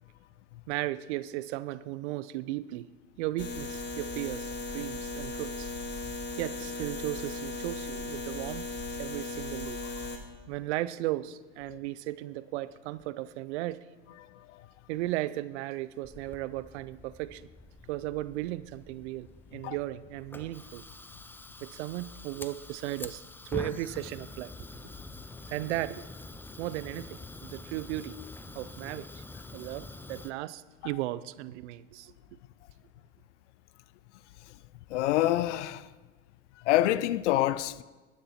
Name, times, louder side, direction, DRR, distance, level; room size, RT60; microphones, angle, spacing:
voice 1, 0.7-2.9 3.2-5.7 6.4-8.7 9.0-9.8 10.5-13.8 14.9-17.4 17.9-20.8 21.6-24.5 25.5-26.0 26.6-28.2 28.5-29.2 29.5-32.1, right 16 dB, 70° right, 0.6 m, -36 dB
sound 1, 3.4-10.2, left 2 dB, 30° left, 1.7 m, -37 dB
Fire, 16.0-30.3, left 2 dB, 5° left, 0.5 m, -46 dB
voice 2, 34.9-35.9 36.6-37.8, left 14 dB, 75° left, 0.6 m, -27 dB
11.5 x 9.8 x 4.4 m
hypercardioid pair, 90°, 35 cm